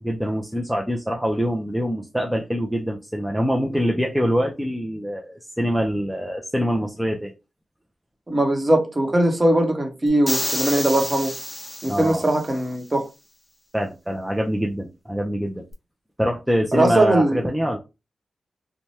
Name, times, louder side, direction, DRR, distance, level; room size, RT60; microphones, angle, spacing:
voice 1, 0.0-7.3 11.9-12.2 13.7-15.6 16.2-17.8, equal, 5° right, 0.5 m, -24 dB
voice 2, 8.3-11.3 11.8-13.1 16.7-17.4, right 1 dB, 25° right, 0.9 m, -20 dB
sound 1, 10.3-12.5, left 1 dB, 15° left, 1.2 m, -29 dB
2.7 x 2.1 x 3.1 m
cardioid pair, 75°, 0 cm